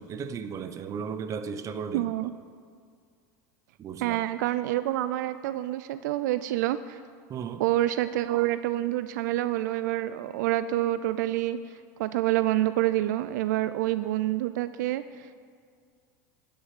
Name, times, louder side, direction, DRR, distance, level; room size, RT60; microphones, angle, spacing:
voice 1, 0.0-2.1 3.8-4.2 7.3-7.7, right 6 dB, 35° right, 10 dB, 0.8 m, -35 dB
voice 2, 1.9-2.3 4.0-7.0 7.6-15.3, right 14 dB, 75° right, 13 dB, 0.4 m, -27 dB
13.0 x 6.8 x 8.2 m, 2.1 s
supercardioid pair, 120°, 10 cm